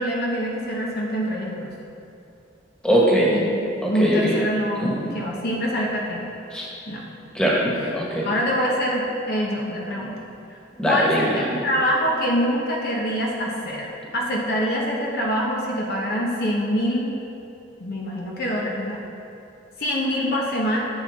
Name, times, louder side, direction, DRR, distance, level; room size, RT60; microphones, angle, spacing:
voice 1, 0.0-1.7 3.3-3.6 3.9-6.3 6.9-7.0 7.7-7.9 8.2-10.2 10.8-13.9 14.1-17.1 17.8-19.0 19.8-20.8, equal, 50° left, -3 dB, 1.1 m, -25 dB
voice 2, 2.8-3.3 3.8-4.3 4.8-5.0 6.5-6.7 7.3-8.3 10.8-11.3, equal, 5° left, -6 dB, 1.7 m, -21 dB
11.5 x 7.0 x 3.7 m, 2.7 s
head